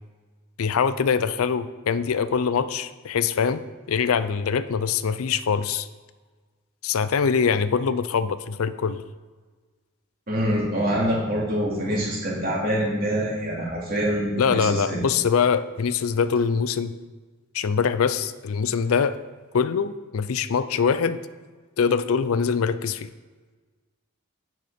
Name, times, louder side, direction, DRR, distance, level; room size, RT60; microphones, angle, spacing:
voice 1, 0.6-3.6 3.9-5.9 6.8-9.0 14.4-16.9 17.5-19.2 19.5-21.2 21.8-23.1, left 6 dB, 75° left, 14 dB, 0.4 m, -23 dB
voice 2, 10.3-15.0, equal, 40° right, -5 dB, 2.9 m, -25 dB
9.5 x 6.3 x 5.1 m, 1.4 s
head